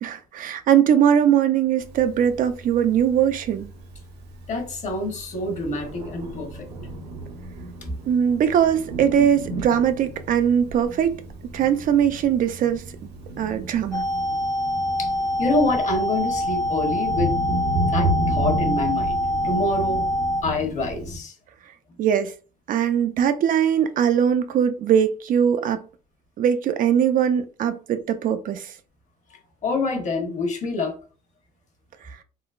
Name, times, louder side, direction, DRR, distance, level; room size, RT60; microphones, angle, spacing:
voice 1, 0.0-3.7 8.1-11.2 11.5-12.8 13.4-14.1 22.0-22.3 22.7-25.8 26.4-28.7, right 9 dB, 55° right, 0.4 m, -21 dB
Thunder, 1.8-21.2, right 1 dB, 85° right, 0.8 m, -33 dB
voice 2, 4.5-6.7 7.8-7.9 15.0-15.1 15.4-17.4 17.9-19.2 19.4-20.0 20.4-21.3 29.3-31.0, left 2 dB, 45° left, 1.0 m, -26 dB
sound 1, 13.9-20.4, left 1 dB, 25° left, 0.4 m, -25 dB
3.7 x 2.0 x 2.4 m
cardioid pair, 110°, 17 cm